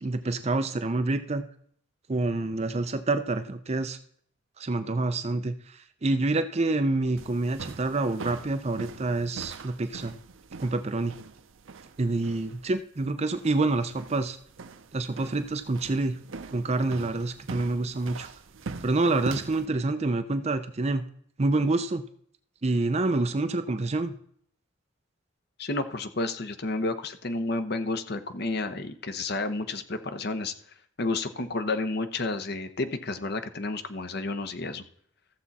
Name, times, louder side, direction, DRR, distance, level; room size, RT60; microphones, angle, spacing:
voice 1, 0.0-1.4 2.1-4.0 4.6-10.1 10.6-11.1 12.0-14.4 14.9-16.2 16.5-18.3 18.8-21.0 21.4-22.0 22.6-24.1, right 2 dB, 35° right, 9 dB, 0.5 m, -27 dB
sound 1, 7.2-19.7, right 4 dB, 80° right, 0.6 m, -43 dB
voice 2, 25.6-30.5 31.0-34.8, left 2 dB, 55° left, 10 dB, 0.9 m, -31 dB
14.5 x 7.2 x 4.1 m, 0.63 s
head